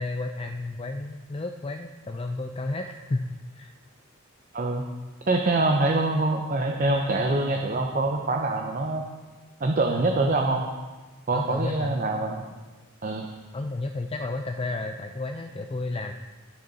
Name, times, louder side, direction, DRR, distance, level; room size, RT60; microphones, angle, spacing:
voice 1, 0.0-3.7 9.9-10.0 11.3-12.0 13.5-16.1, left 2 dB, 25° left, 5 dB, 0.4 m, -32 dB
voice 2, 4.5-4.8 5.3-9.0 9.6-10.7 11.3-12.4 13.0-13.2, right 2 dB, 40° right, 3 dB, 0.7 m, -24 dB
19.5 x 6.7 x 4.1 m, 1.3 s
head